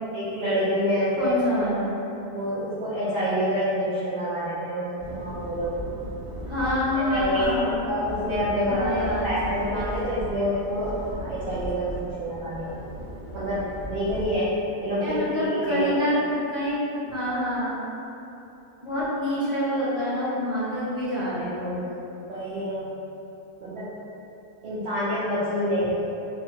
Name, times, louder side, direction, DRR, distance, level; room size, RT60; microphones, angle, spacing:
voice 1, 0.1-1.3 2.3-5.8 6.9-12.7 13.3-15.8 22.3-22.9 23.6-23.9 24.6-26.1, equal, 75° right, -10 dB, 0.5 m, -27 dB
voice 2, 1.2-1.9 6.5-7.8 8.7-9.4 15.0-17.8 18.8-21.8, equal, 5° right, -14 dB, 0.7 m, -27 dB
sound 1, 5.0-14.4, equal, 25° left, 0.8 m, -37 dB
2.7 x 2.4 x 2.7 m, 2.9 s
omnidirectional pair, 1.6 m